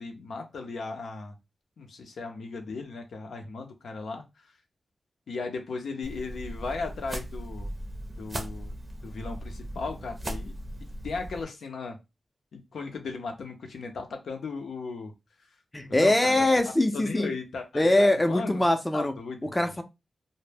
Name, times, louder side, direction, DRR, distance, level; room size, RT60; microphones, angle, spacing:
voice 1, 0.0-1.3 1.8-4.2 5.3-7.7 8.2-8.7 9.0-10.5 11.0-12.0 12.5-15.1 15.8-16.4 16.9-18.6 18.9-19.5, left 4 dB, 85° left, 0.5 m, -36 dB
sound 1, 6.0-11.4, right 1 dB, 40° right, 0.6 m, -38 dB
voice 2, 15.7-17.3 17.7-19.1 19.5-19.8, left 1 dB, 15° left, 0.5 m, -23 dB
2.1 x 2.0 x 3.2 m
cardioid pair, 55°, 0 cm